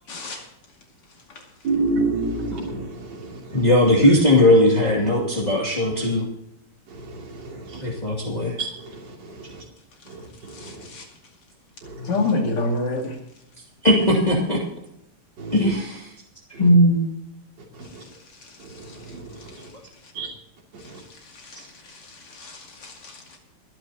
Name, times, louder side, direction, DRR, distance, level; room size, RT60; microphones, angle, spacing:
voice 1, 0.1-0.4 10.5-11.0 12.0-13.2 21.3-23.4, left 2 dB, 85° left, 3.3 m, -28 dB
voice 2, 1.6-3.7 6.9-8.0 8.6-9.6 10.1-10.9 11.8-12.3 13.8-13.9 15.4-15.7 16.5-16.7 17.7-18.0 18.6-19.7 20.1-20.3 20.7-21.0, right 3 dB, 55° right, 3.5 m, -31 dB
voice 3, 3.5-6.2 7.8-8.6 13.8-14.6 15.5-15.9 16.6-17.1, left 1 dB, 20° left, 2.6 m, -18 dB
29.0 x 9.8 x 2.9 m
omnidirectional pair, 2.4 m